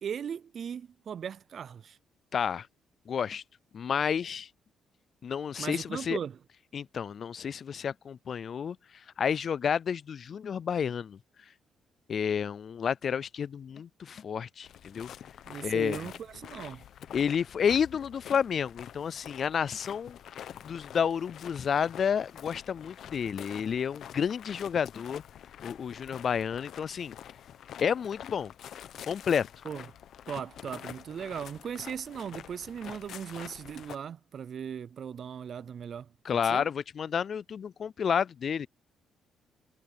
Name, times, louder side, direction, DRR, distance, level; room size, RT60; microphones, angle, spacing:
voice 1, 0.0-2.0 5.6-6.4 15.5-16.8 29.6-29.8 30.3-36.1 36.5-36.7, right 8 dB, 55° right, 0.4 m, -38 dB
voice 2, 2.3-2.7 3.1-3.4 3.7-4.5 5.2-6.2 6.7-11.2 12.1-15.1 15.6-16.1 17.1-20.2 20.6-25.2 25.6-27.1 27.8-28.5 29.1-29.5 36.3-38.7, left 7 dB, 55° left, 0.3 m, -30 dB
sound 1, 14.6-34.0, left 10 dB, 70° left, 1.0 m, -47 dB
cardioid pair, 90°, 0 cm